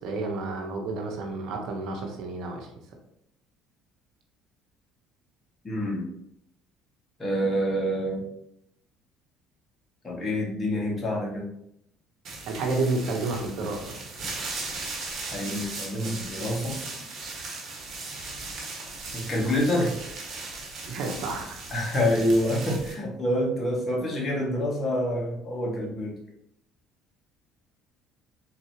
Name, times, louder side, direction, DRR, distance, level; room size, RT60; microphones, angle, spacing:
voice 1, 0.0-2.7 12.5-13.9 20.9-21.6, right 3 dB, 70° right, 3 dB, 0.9 m, -30 dB
voice 2, 5.6-6.1 7.2-8.2 10.0-11.5 15.3-16.9 19.1-19.9 21.7-26.2, equal, 30° left, -3 dB, 1.8 m, -27 dB
sound 1, 12.2-22.9, right 3 dB, 50° right, 1.6 m, -38 dB
4.4 x 3.9 x 2.9 m, 0.77 s
supercardioid pair, 80°, 0 cm